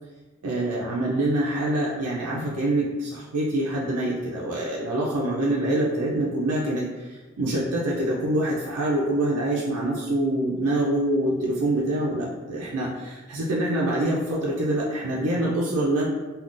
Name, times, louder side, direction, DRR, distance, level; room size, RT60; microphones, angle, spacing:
voice 1, 0.4-16.1, right 1 dB, 85° right, -5 dB, 0.5 m, -25 dB
2.4 x 2.3 x 3.6 m, 1.3 s
head